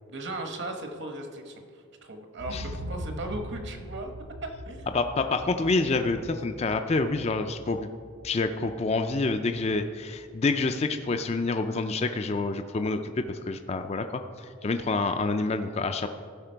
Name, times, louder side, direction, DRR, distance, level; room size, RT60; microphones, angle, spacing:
voice 1, 0.1-4.1 4.4-4.9 5.3-5.4, right 2 dB, 55° right, 4 dB, 1.1 m, -37 dB
sound 1, 2.4-10.3 10.7-10.8, equal, 80° right, 0.8 m, -42 dB
voice 2, 4.9-7.9 8.2-16.1, left 3 dB, 30° left, 7 dB, 0.4 m, -27 dB
15.5 x 5.9 x 4.5 m, 2.1 s
head